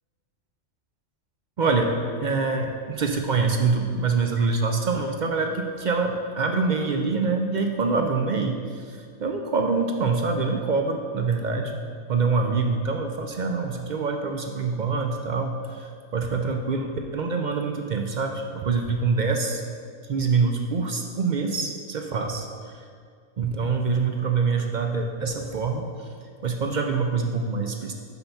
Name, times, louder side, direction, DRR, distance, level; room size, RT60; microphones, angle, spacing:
voice 1, 1.6-1.9 2.2-11.8 12.1-19.6 20.0-22.8 23.4-26.1 26.4-27.9, right 4 dB, 55° right, 3 dB, 0.5 m, -25 dB
5.9 x 5.5 x 5.7 m, 2.1 s
omnidirectional pair, 1.4 m